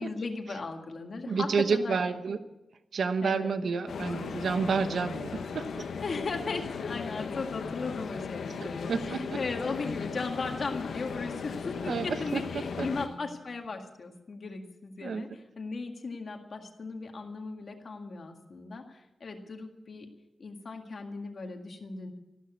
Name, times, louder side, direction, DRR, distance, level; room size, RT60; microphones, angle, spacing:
voice 1, 0.0-2.2 3.2-3.5 6.0-20.1 20.4-22.1, left 3 dB, 45° left, 4 dB, 1.9 m, -37 dB
voice 2, 1.3-2.4 2.9-5.9 8.9-9.4 11.9-12.0 12.3-12.4 12.8-12.9 15.0-15.2, right 5 dB, 65° right, 10 dB, 1.0 m, -29 dB
sound 1, 3.9-13.1, left 5 dB, 90° left, 1.2 m, -37 dB
sound 2, 6.5-14.0, left 5 dB, 60° left, 1.0 m, -48 dB
13.5 x 12.0 x 8.3 m, 0.98 s
wide cardioid pair, 170°, 0 cm